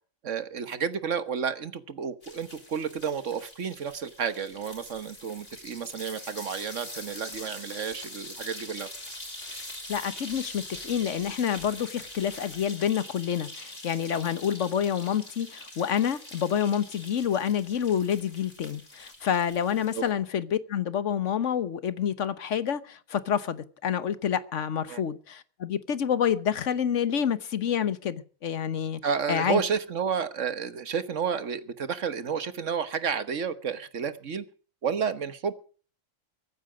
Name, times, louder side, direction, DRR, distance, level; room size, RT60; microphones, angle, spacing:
voice 1, 0.2-8.9 19.9-20.0 24.9-25.0 29.0-34.4 34.8-35.5, right 6 dB, 65° right, 1.5 m, -31 dB
sound 1, 2.2-20.1, left 1 dB, 45° left, 5.2 m, -44 dB
voice 2, 9.9-29.0 29.3-29.6, left 8 dB, 65° left, 1.4 m, -28 dB
23.0 x 9.5 x 5.0 m
omnidirectional pair, 1.4 m